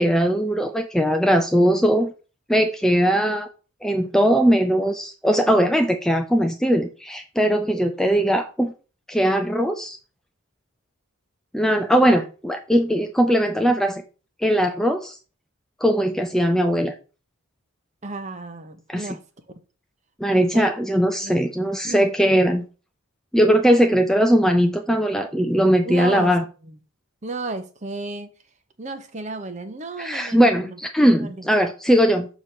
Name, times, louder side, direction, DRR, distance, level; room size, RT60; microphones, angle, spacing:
voice 1, 0.0-2.1 2.5-3.5 3.8-8.7 9.1-10.0 11.5-14.0 14.4-15.2 15.8-16.9 18.9-19.1 20.2-22.6 23.3-26.4 30.0-32.3, equal, ahead, 5 dB, 0.3 m, -19 dB
voice 2, 18.0-19.2 20.5-20.7 21.2-21.3 21.8-22.0 25.8-26.3 27.2-28.3 28.8-30.8 31.1-31.5, right 3 dB, 30° right, 9 dB, 0.6 m, -33 dB
6.7 x 3.0 x 5.5 m, 0.35 s
head